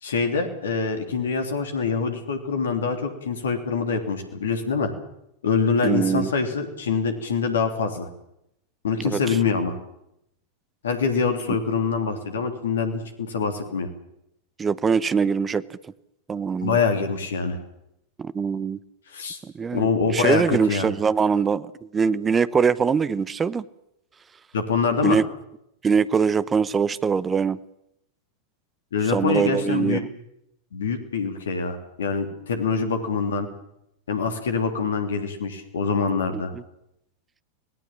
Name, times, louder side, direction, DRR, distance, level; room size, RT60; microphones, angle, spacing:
voice 1, 0.0-4.9 5.4-8.1 8.8-9.8 10.8-13.9 16.6-17.6 19.1-19.4 19.7-20.9 24.5-25.2 28.9-30.0 30.7-33.5 34.1-36.5, left 5 dB, 65° left, 7 dB, 3.3 m, -25 dB
voice 2, 5.8-6.3 9.0-9.4 14.6-15.8 16.3-16.8 18.2-18.8 19.4-23.6 25.0-25.2 25.8-27.6 29.1-30.1 36.3-36.6, right 6 dB, 20° right, 17 dB, 0.8 m, -23 dB
26.0 x 18.0 x 7.5 m, 0.80 s
figure-of-eight pair, 90°, 0 cm